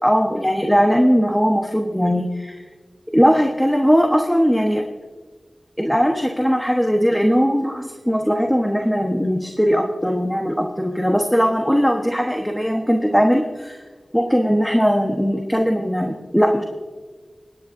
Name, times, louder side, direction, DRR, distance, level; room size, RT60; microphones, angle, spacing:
voice 1, 0.0-2.6 3.1-4.8 5.8-13.8 14.1-16.6, equal, 5° left, 2 dB, 1.2 m, -19 dB
23.5 x 10.0 x 2.7 m, 1.4 s
cardioid pair, 40°, 0 cm